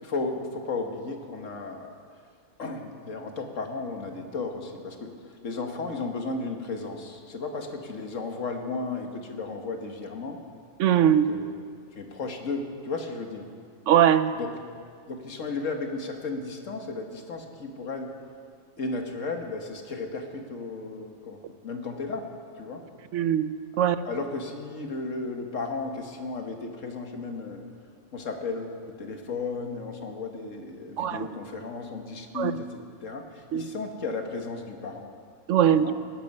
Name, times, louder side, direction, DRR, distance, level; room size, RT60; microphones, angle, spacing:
voice 1, 0.0-2.0 2.6-10.4 11.3-11.5 11.9-13.5 14.3-14.6 15.1-18.2 18.8-22.3 22.6-22.9 23.7-27.6 28.1-35.1 35.7-35.9, left 3 dB, 80° left, 4 dB, 1.8 m, -34 dB
voice 2, 10.8-11.3 13.9-14.3 23.1-24.0 31.0-31.3 32.3-32.6 33.5-33.7 35.5-35.9, right 10 dB, 75° right, 13 dB, 1.0 m, -21 dB
19.5 x 12.0 x 5.5 m, 2.2 s
omnidirectional pair, 1.3 m